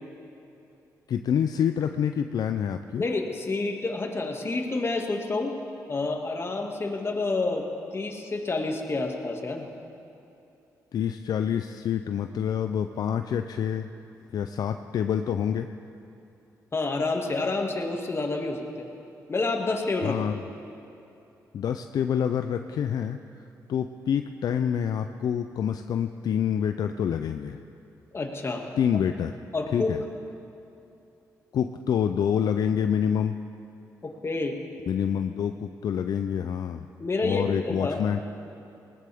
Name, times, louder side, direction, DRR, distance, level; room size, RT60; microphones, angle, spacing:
voice 1, 1.1-3.1 10.9-13.9 14.3-15.7 20.0-20.4 21.5-23.2 23.7-27.6 28.8-29.3 29.7-30.0 31.5-33.4 34.9-36.9 37.2-38.2, left 8 dB, 70° left, 8 dB, 0.5 m, -27 dB
voice 2, 3.0-5.5 5.9-7.6 7.9-9.7 16.7-18.9 19.3-20.2 28.1-28.6 29.5-29.9 34.0-34.6 37.0-38.0, left 3 dB, 40° left, 2 dB, 2.1 m, -28 dB
20.0 x 18.0 x 3.6 m, 2.8 s
cardioid pair, 60°, 7 cm